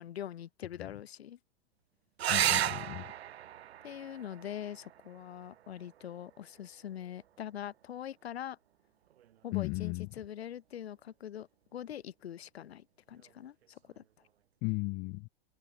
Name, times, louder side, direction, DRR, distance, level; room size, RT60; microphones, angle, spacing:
voice 1, 0.0-1.4 3.8-8.6 9.4-14.0, left 10 dB, 85° left, 2.6 m, -43 dB
sound 1, 2.2-7.2 9.1-9.7 13.2-13.3 13.6-13.7, right 11 dB, 85° right, 1.9 m, -35 dB
voice 2, 2.3-3.1 9.5-10.1 14.6-15.3, left 31 dB, 40° left, 0.8 m, -35 dB
hypercardioid pair, 125°, 31 cm